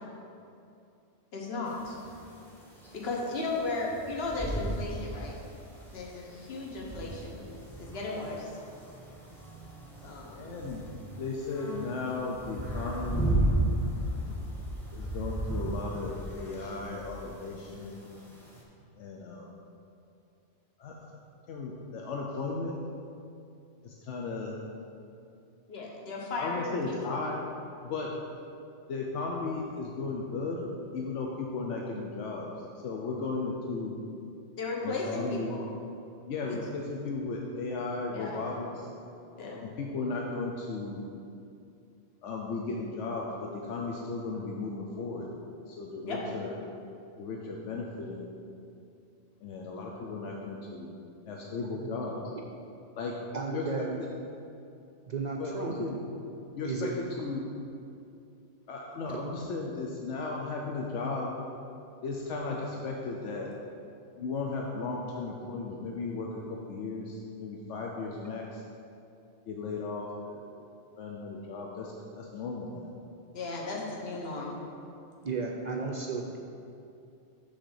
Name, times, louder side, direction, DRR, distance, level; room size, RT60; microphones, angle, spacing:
voice 1, 1.3-2.0 2.9-5.3 5.9-7.4 7.8-8.5 10.0-10.6 25.7-27.3 34.6-35.6 36.4-36.6 38.1-38.5 39.4-39.6 46.0-46.4 73.3-74.5, left 3 dB, 60° left, -2 dB, 1.3 m, -35 dB
sound 1, 1.7-18.6, right 1 dB, ahead, 0.9 m, -36 dB
voice 2, 10.3-10.8 11.2-13.5 14.9-18.0 19.0-19.5 20.8-20.9 21.5-22.8 23.8-24.6 26.4-27.5 27.8-28.1 28.9-30.6 30.9-32.5 32.8-33.9 34.8-35.5 36.3-38.9 39.6-41.0 42.2-45.3 45.7-46.5 47.2-48.2 49.4-50.9 51.3-52.1 53.0-53.1 53.5-53.9 55.4-56.0 56.5-57.4 58.7-61.3 62.0-63.5 64.2-68.6 69.5-70.4 71.0-72.9, left 3 dB, 85° left, -1 dB, 1.0 m, -35 dB
voice 3, 53.3-54.0 55.1-55.9 56.6-56.9 59.1-59.3 75.2-76.4, right 4 dB, 60° right, 1 dB, 0.4 m, -34 dB
6.4 x 4.0 x 6.3 m, 2.6 s
omnidirectional pair, 1.2 m